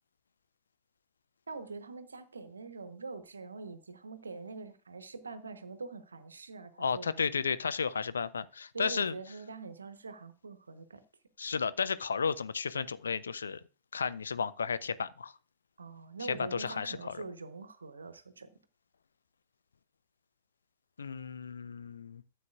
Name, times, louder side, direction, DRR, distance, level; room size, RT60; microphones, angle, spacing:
voice 1, 1.5-7.3 8.7-11.0 15.8-18.5, right 4 dB, 75° right, 0.9 m, -44 dB
voice 2, 6.8-9.2 11.4-13.6 13.9-15.3 16.3-17.2 21.0-22.2, left 5 dB, 70° left, 0.5 m, -33 dB
13.0 x 7.7 x 2.4 m
figure-of-eight pair, 90°, 0 cm